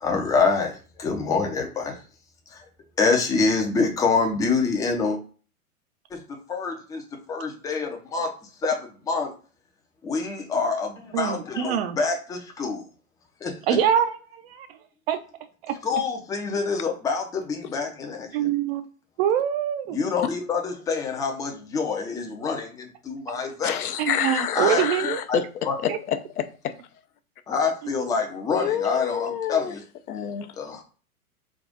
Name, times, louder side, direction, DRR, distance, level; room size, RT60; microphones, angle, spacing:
voice 1, 0.0-2.0 2.5-2.7 3.0-5.2 6.1-9.3 10.0-12.9 13.4-13.8 15.8-18.5 19.9-23.8 24.5-24.8 25.3-25.4 25.6-25.8 27.5-29.8 30.5-30.8, left 4 dB, 10° left, 0.4 m, -26 dB
voice 2, 11.1-12.0 13.7-14.7 15.1-15.2 15.6-15.8 18.3-18.9 19.2-20.0 24.0-25.2 25.9-26.0, right 9 dB, 45° right, 0.5 m, -24 dB
voice 3, 23.6-25.5 25.8-26.7 28.5-29.7 30.1-30.5, left 9 dB, 75° left, 0.7 m, -28 dB
3.5 x 2.3 x 3.8 m
hypercardioid pair, 110°, 45 cm